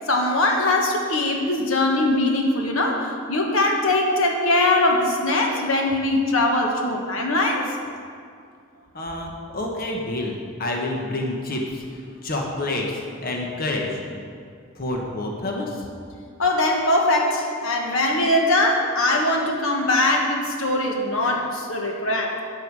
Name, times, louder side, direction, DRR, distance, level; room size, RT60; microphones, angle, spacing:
voice 1, 0.0-7.8 16.4-22.4, left 2 dB, 80° left, 1 dB, 1.3 m, -21 dB
voice 2, 8.9-14.0 14.8-15.9, left 2 dB, 45° left, 0 dB, 1.2 m, -28 dB
12.5 x 7.7 x 4.8 m, 2.3 s
head